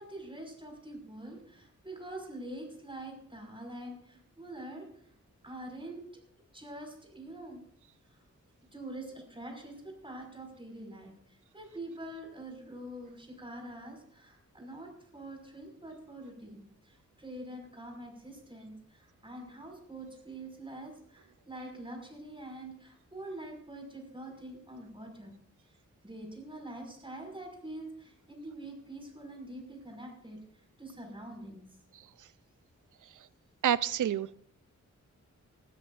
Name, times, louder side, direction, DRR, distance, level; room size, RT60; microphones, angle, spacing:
voice 1, 0.0-4.9 5.4-6.0 6.5-7.6 8.1-8.2 8.7-11.1 11.5-25.3 26.0-30.4 30.8-31.6, right 1 dB, 15° right, 2 dB, 5.5 m, -45 dB
voice 2, 33.6-34.3, right 10 dB, 85° right, 18 dB, 0.5 m, -28 dB
20.0 x 14.0 x 2.6 m, 0.65 s
cardioid pair, 70°, 30 cm